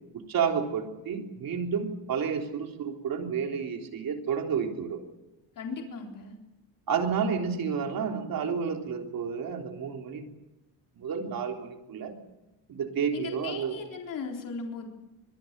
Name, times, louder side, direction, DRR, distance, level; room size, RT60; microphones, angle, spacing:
voice 1, 0.1-5.0 6.9-10.2 11.0-12.2 12.7-13.8, right 6 dB, 50° right, 3 dB, 3.6 m, -30 dB
voice 2, 5.6-6.4 13.1-14.9, left 5 dB, 50° left, 1 dB, 3.9 m, -37 dB
25.0 x 20.5 x 6.8 m, 0.99 s
cardioid pair, 165°, 43 cm